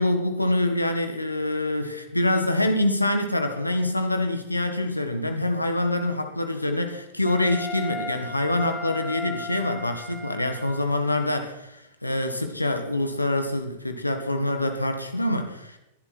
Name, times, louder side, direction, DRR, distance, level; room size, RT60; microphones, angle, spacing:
voice 1, 0.0-15.8, left 1 dB, 90° left, 6 dB, 1.5 m, -25 dB
Wind instrument woodwind instrument, 7.3-11.0, left 2 dB, 10° left, 2.0 m, -36 dB
21.5 x 11.0 x 4.4 m, 0.90 s
figure-of-eight pair, 100°, 0 cm